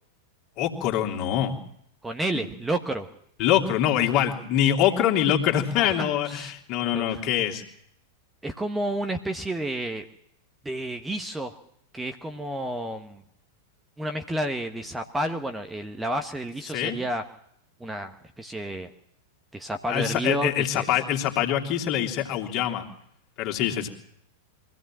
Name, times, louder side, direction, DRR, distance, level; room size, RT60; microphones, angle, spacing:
voice 1, 0.6-1.6 3.4-7.6 16.7-17.0 19.9-22.9 23.4-23.9, left 10 dB, 40° left, 2 dB, 3.0 m, -24 dB
voice 2, 2.0-3.1 5.8-6.5 6.9-7.2 8.4-10.0 10.6-11.6 11.9-13.2 14.0-17.2 17.8-18.9 19.5-20.9, right 1 dB, 10° right, 6 dB, 1.3 m, -30 dB
24.0 x 15.5 x 7.6 m, 0.73 s
figure-of-eight pair, 95°, 0 cm